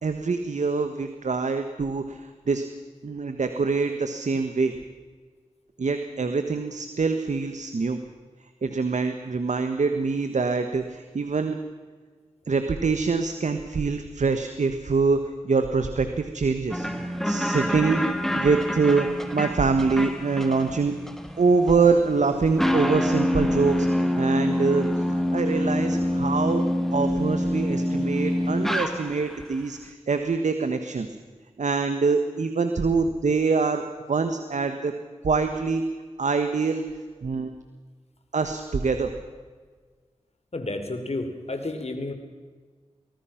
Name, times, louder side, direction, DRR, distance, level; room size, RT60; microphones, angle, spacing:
voice 1, 0.0-2.6 3.0-4.7 5.8-8.0 8.6-11.6 12.5-16.9 17.2-18.0 18.3-20.9 21.4-26.6 26.9-31.1 31.6-33.8 34.1-34.9 35.2-35.8 36.2-36.8 37.2-37.5 38.3-39.1, right 4 dB, 75° right, 8 dB, 1.5 m, -24 dB
sound 1, 16.7-29.4, left 1 dB, 5° left, 2.7 m, -26 dB
voice 2, 40.5-42.1, left 2 dB, 60° left, 7 dB, 3.7 m, -31 dB
24.0 x 19.5 x 6.0 m, 1.5 s
cardioid pair, 40°, 12 cm